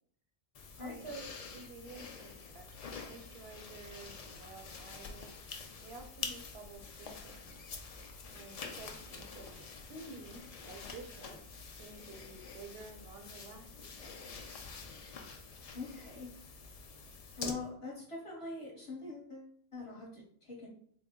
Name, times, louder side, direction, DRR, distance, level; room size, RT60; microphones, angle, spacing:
sound 1, 0.5-17.5, left 5 dB, 80° left, 0.3 m, -47 dB
voice 1, 0.8-7.5 8.3-11.4 11.8-14.6, right 3 dB, 60° right, 4 dB, 0.8 m, -51 dB
voice 2, 15.7-16.3 17.4-20.7, left 3 dB, 30° left, -4 dB, 0.9 m, -43 dB
3.8 x 2.1 x 3.6 m, 0.62 s
omnidirectional pair, 1.2 m